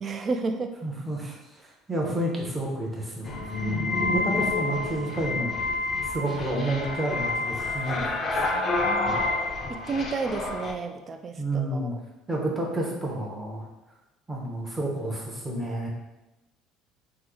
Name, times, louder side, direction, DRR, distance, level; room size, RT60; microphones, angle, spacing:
voice 1, 0.0-0.7 3.7-3.8 8.4-9.2 9.7-11.9, right 4 dB, 35° right, 6 dB, 0.3 m, -32 dB
voice 2, 0.8-5.5 6.1-8.4 9.0-9.2 11.4-11.9 12.3-13.6 14.3-15.9, right 1 dB, 10° right, -3 dB, 0.8 m, -30 dB
sound 1, 3.3-10.7, left 3 dB, 35° left, 0.5 m, -28 dB
3.1 x 2.0 x 3.6 m, 1.0 s
cardioid pair, 115°, 0 cm